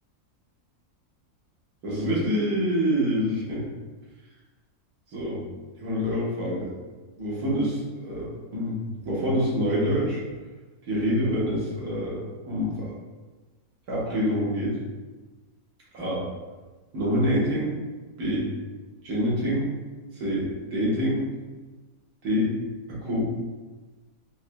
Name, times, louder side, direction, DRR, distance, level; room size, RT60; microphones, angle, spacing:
voice 1, 1.8-3.6 5.1-5.4 5.8-6.7 7.2-8.8 9.0-10.2 10.9-12.9 13.9-14.8 15.9-16.2 16.9-17.7 18.2-18.5 19.0-19.7 20.1-21.3 22.2-22.5 22.9-23.3, equal, 90° right, -6 dB, 1.6 m, -26 dB
4.1 x 2.8 x 2.2 m, 1.3 s
omnidirectional pair, 1.5 m